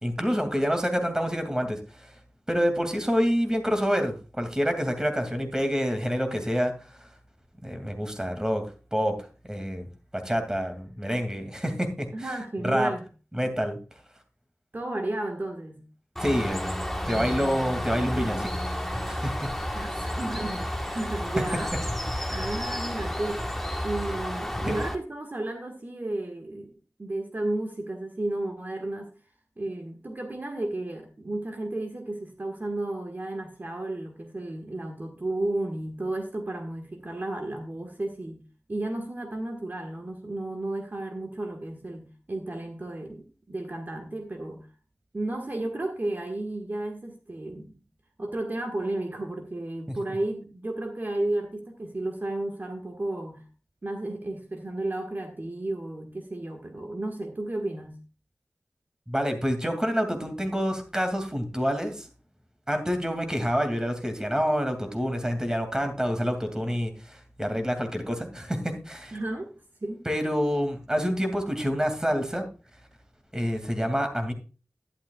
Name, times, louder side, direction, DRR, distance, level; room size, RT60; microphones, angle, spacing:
voice 1, 0.0-2.1 2.5-7.1 7.6-8.6 8.9-9.1 9.5-9.9 10.1-12.3 12.6-12.9 13.3-13.8 16.2-16.8 17.1-18.5 19.1-19.5 22.2-22.3 24.7-24.8 49.9-50.0 59.1-62.1 62.7-69.2 70.0-72.5 73.3-74.3, equal, 15° right, 6 dB, 2.5 m, -27 dB
voice 2, 12.1-13.0 14.7-15.9 17.1-17.6 19.7-21.7 22.3-23.5 23.8-26.7 27.0-29.1 29.6-44.7 45.1-47.8 48.2-53.4 53.8-58.0 69.1-69.5 69.8-70.0, right 2 dB, 40° right, 3 dB, 1.7 m, -33 dB
Bird, 16.2-25.0, equal, 5° left, 1.4 m, -31 dB
11.5 x 11.5 x 2.4 m, 0.33 s
wide cardioid pair, 85°, 5 cm